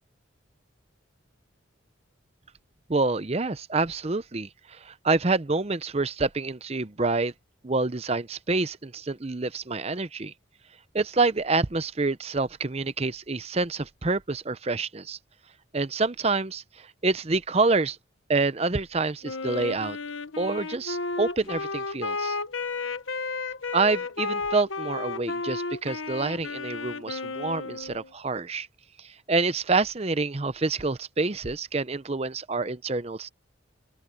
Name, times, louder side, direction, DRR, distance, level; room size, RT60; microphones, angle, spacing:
voice 1, 2.9-7.3 7.6-10.3 10.9-15.2 15.7-18.0 18.3-20.0 20.4-22.4 23.7-28.7 29.0-33.3, right 3 dB, 30° right, 0.7 m, -27 dB
Wind instrument woodwind instrument, 19.2-28.1, left 3 dB, 90° left, 1.3 m, -33 dB
open air
head